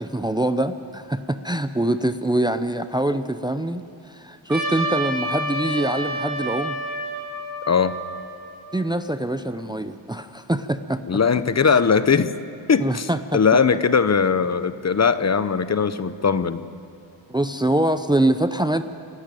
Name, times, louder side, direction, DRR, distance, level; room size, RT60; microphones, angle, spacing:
voice 1, 0.0-6.8 8.7-11.0 11.6-11.8 12.8-13.4 17.3-18.8, right 1 dB, 10° right, 10 dB, 0.6 m, -24 dB
Trumpet, 4.5-9.0, right 1 dB, 45° right, 6.4 m, -29 dB
voice 2, 11.1-12.3 12.7-16.6, left 6 dB, 35° left, 13 dB, 0.8 m, -19 dB
28.5 x 12.0 x 9.0 m, 2.6 s
cardioid pair, 95°, 46 cm